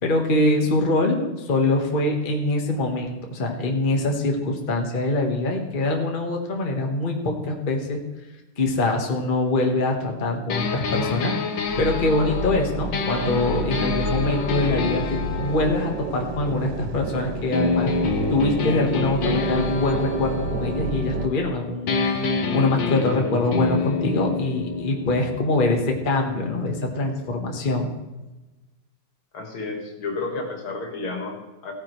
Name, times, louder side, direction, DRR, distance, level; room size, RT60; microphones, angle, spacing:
voice 1, 0.0-8.0 8.6-11.3 11.8-17.9 18.3-22.0 22.5-27.9, left 2 dB, 30° left, 1 dB, 1.3 m, -24 dB
sound 1, 10.5-17.0 17.5-21.5 21.9-27.6, left 4 dB, 65° left, 1.7 m, -28 dB
sound 2, 11.6-21.3, right 2 dB, 70° right, 1.1 m, -31 dB
voice 2, 29.3-31.7, left 3 dB, 80° left, 3 dB, 2.6 m, -31 dB
16.0 x 9.5 x 3.2 m, 1.1 s
omnidirectional pair, 2.3 m